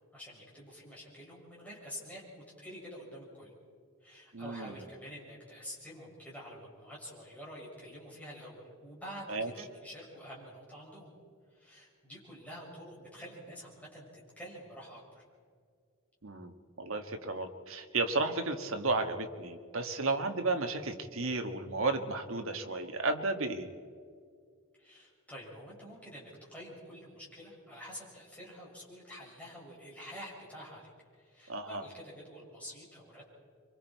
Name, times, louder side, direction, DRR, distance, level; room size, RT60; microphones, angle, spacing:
voice 1, 0.1-3.5 4.0-11.1 11.5-14.1 14.4-15.2 24.8-33.2, equal, 5° left, -6 dB, 6.9 m, -48 dB
voice 2, 4.3-4.8 9.3-9.5 16.2-23.7 31.5-31.8, right 3 dB, 65° right, 5 dB, 1.5 m, -33 dB
27.0 x 24.0 x 4.6 m, 2.1 s
head